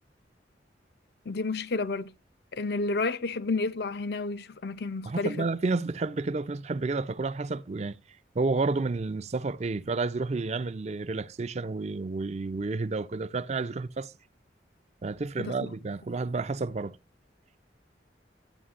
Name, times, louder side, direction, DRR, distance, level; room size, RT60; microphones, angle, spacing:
voice 1, 1.3-2.1 2.5-5.5 15.4-15.7, left 3 dB, 60° left, 0.6 m, -31 dB
voice 2, 5.1-8.0 8.4-14.1 15.0-17.0, right 3 dB, 40° right, 0.4 m, -30 dB
12.5 x 9.4 x 2.4 m
head